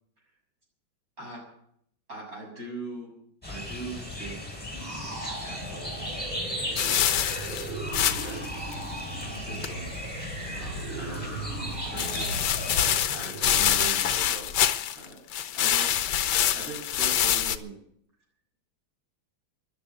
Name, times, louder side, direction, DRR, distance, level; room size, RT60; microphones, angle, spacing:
voice 1, 2.1-3.1 3.5-4.4 5.3-6.2 6.7-7.1 8.0-8.5 9.3-9.9 10.5-12.3 13.1-15.2 15.5-15.9 16.5-17.8, right 3 dB, 45° right, -1 dB, 7.2 m, -41 dB
sound 1, 3.4-13.0, left 1 dB, 5° left, 3.6 m, -37 dB
sound 2, 4.7-14.2, right 2 dB, 75° right, 6.2 m, -38 dB
sound 3, 6.8-8.5 8.7-8.8 9.2-9.3 9.6-9.7 12.0-15.1 15.3-17.6, left 10 dB, 65° left, 1.3 m, -25 dB
14.0 x 11.5 x 8.7 m, 0.70 s
omnidirectional pair, 2.2 m